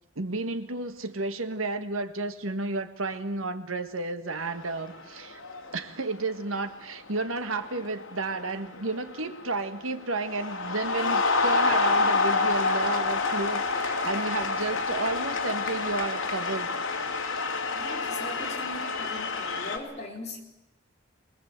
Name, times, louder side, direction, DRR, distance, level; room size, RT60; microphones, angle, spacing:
voice 1, 0.1-5.4 5.7-16.7, right 3 dB, 85° right, 9 dB, 1.7 m, -32 dB
sound 1, 4.5-5.0 5.3-5.8 6.7-6.9 7.3-9.5 9.9-19.8, left 3 dB, 85° left, 2.6 m, -28 dB
voice 2, 17.7-20.4, left 2 dB, 35° left, 0 dB, 4.6 m, -40 dB
23.0 x 21.0 x 8.3 m, 0.95 s
head